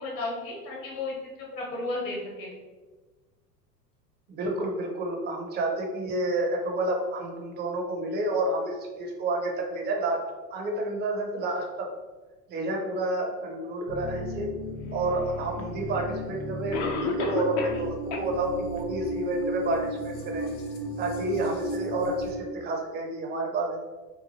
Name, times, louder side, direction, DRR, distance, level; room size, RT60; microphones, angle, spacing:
voice 1, 0.0-2.5, left 2 dB, 55° left, -3 dB, 1.2 m, -34 dB
voice 2, 4.3-10.2 10.5-11.9 12.5-14.5 14.9-20.5 21.0-23.9, right 2 dB, 20° right, 1 dB, 0.5 m, -29 dB
sound 1, 13.9-22.3, equal, 85° left, 0.6 m, -35 dB
Cough, 15.6-15.7 16.7-17.9 18.1-18.2 18.8-18.9 19.4-19.5, left 4 dB, 35° left, 0.4 m, -30 dB
2.8 x 2.3 x 2.7 m, 1.3 s
hypercardioid pair, 85°, 50 cm